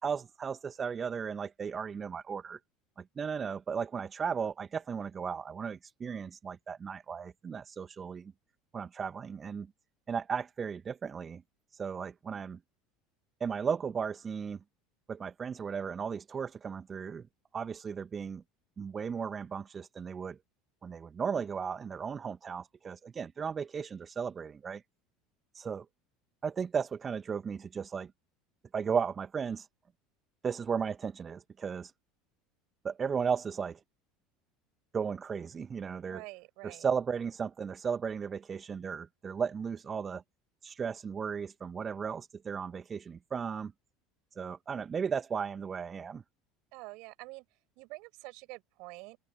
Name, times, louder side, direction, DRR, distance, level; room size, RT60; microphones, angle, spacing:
voice 1, 0.0-2.6 3.0-8.3 8.7-9.7 10.1-11.4 11.7-12.6 13.4-14.6 15.1-17.3 17.5-18.4 18.8-20.4 20.8-24.8 25.5-25.8 26.4-28.1 28.7-29.7 30.4-31.9 32.8-33.8 34.9-36.2 36.6-40.2 40.6-43.7 44.3-46.2, right 6 dB, 30° right, 1.6 m, -35 dB
voice 2, 36.0-36.9 46.7-47.4 47.8-49.2, right 27 dB, 55° right, 6.5 m, -47 dB
open air
figure-of-eight pair, 70°, 0 cm